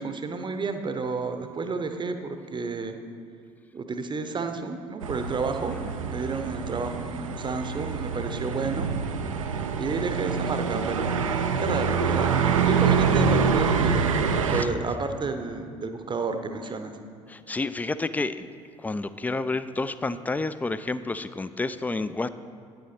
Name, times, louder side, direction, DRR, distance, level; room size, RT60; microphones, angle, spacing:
voice 1, 0.0-3.0 3.7-5.8 6.0-8.9 9.8-11.3 11.6-14.2 14.5-17.0, right 4 dB, 30° right, 7 dB, 0.7 m, -31 dB
sound 1, 5.0-14.6, right 6 dB, 80° right, 0.5 m, -25 dB
voice 2, 17.3-18.5 18.8-22.3, left 3 dB, 10° left, 13 dB, 0.3 m, -30 dB
9.5 x 7.9 x 4.3 m, 2.4 s
figure-of-eight pair, 55°, 17 cm